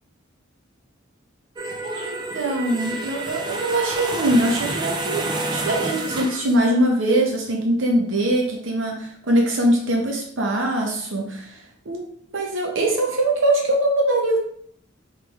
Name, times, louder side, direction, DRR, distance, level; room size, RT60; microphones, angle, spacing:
sound 1, 1.6-6.6, right 2 dB, 20° right, 0.4 m, -29 dB
voice 1, 1.8-12.0 12.3-14.4, right 1 dB, 70° right, 0 dB, 0.8 m, -22 dB
3.3 x 3.1 x 3.4 m, 0.63 s
head